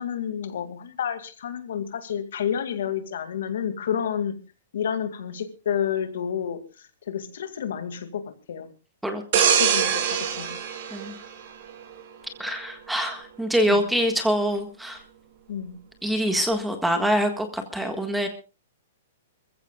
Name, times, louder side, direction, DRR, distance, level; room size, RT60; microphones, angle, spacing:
voice 1, 0.0-4.3 4.7-8.7 9.4-10.6 13.7-13.8 15.5-15.8, left 8 dB, 70° left, 9 dB, 2.2 m, -30 dB
voice 2, 9.0-9.4 10.9-11.1 12.4-15.0 16.0-18.3, equal, ahead, 5 dB, 1.6 m, -25 dB
sound 1, 9.3-12.0 12.5-12.7, right 8 dB, 50° right, 3.0 m, -24 dB
26.5 x 15.0 x 2.3 m, 0.31 s
hypercardioid pair, 165°, 0 cm